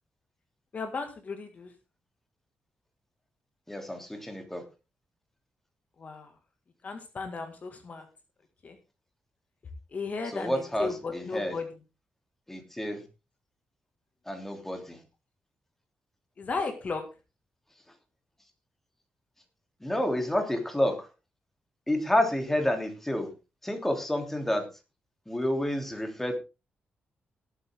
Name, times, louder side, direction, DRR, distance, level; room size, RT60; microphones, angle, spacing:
voice 1, 0.7-1.7 6.0-6.3 6.8-8.0 8.6-8.8 9.9-11.7 16.4-17.0, left 4 dB, 45° left, 6 dB, 2.0 m, -35 dB
voice 2, 3.7-4.6 10.2-11.6 12.5-13.0 14.3-15.0 19.8-21.1 21.9-23.3 23.6-24.6 25.3-26.4, left 1 dB, 10° left, 4 dB, 3.1 m, -29 dB
18.5 x 8.6 x 3.7 m, 0.29 s
wide cardioid pair, 125°, 4 cm